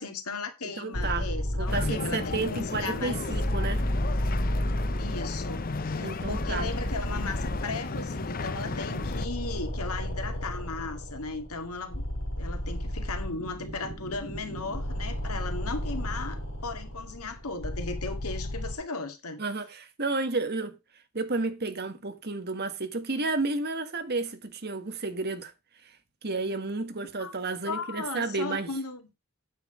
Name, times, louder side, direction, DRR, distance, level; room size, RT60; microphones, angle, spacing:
voice 1, 0.0-3.2 4.9-12.0 12.4-19.4 27.2-27.3 27.7-29.1, left 3 dB, 85° left, 2.2 m, -36 dB
voice 2, 0.6-1.3 1.6-3.8 6.0-6.7 19.4-20.8 21.1-25.5 26.2-28.7, right 3 dB, 45° right, 1.6 m, -31 dB
sound 1, 0.9-18.7, equal, 60° left, 3.6 m, -33 dB
sound 2, 1.7-9.3, left 3 dB, 40° left, 0.6 m, -34 dB
9.2 x 7.7 x 5.0 m
head